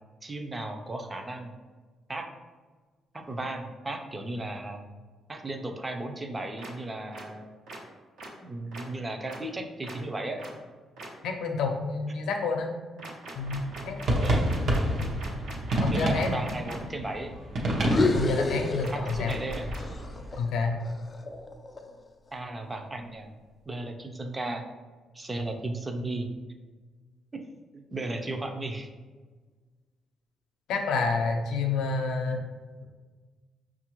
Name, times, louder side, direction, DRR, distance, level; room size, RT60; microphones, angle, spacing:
voice 1, 0.2-1.5 2.1-2.3 3.1-4.8 5.3-7.5 8.4-10.4 12.1-12.2 14.2-14.5 15.9-17.3 18.9-19.7 22.3-23.3 23.7-24.7 25.1-26.3 27.3-27.5 27.7-28.9, right 2 dB, 20° right, 4 dB, 0.5 m, -35 dB
sound 1, 6.6-6.7 7.1-7.2 7.7-7.8 8.2-8.3 8.7-8.8 9.3-9.4 9.8-9.9 10.4-10.5 11.0-11.1 13.0-16.8 18.8-20.0, right 2 dB, 85° right, 1.1 m, -42 dB
voice 2, 11.2-12.7 13.3-14.3 14.9-15.1 15.8-16.4 18.1-19.3 20.4-20.8 30.7-32.5, left 4 dB, 80° left, 3 dB, 0.6 m, -29 dB
sound 2, 13.4-20.4, right 1 dB, 60° right, 0.8 m, -29 dB
sound 3, 17.7-19.5 19.8-22.0, left 2 dB, 30° left, 0.3 m, -30 dB
5.3 x 2.4 x 3.0 m, 1.4 s
cardioid pair, 90°, 0 cm